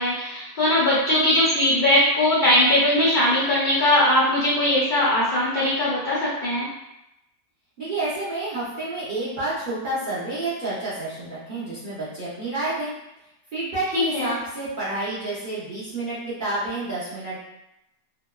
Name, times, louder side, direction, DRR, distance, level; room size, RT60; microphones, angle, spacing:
voice 1, 0.0-6.7 13.9-14.3, left 1 dB, 80° left, -9 dB, 0.4 m, -20 dB
voice 2, 7.8-12.9 13.5-17.4, right 2 dB, 65° right, -10 dB, 0.5 m, -29 dB
2.8 x 2.1 x 2.2 m, 0.88 s
omnidirectional pair, 1.8 m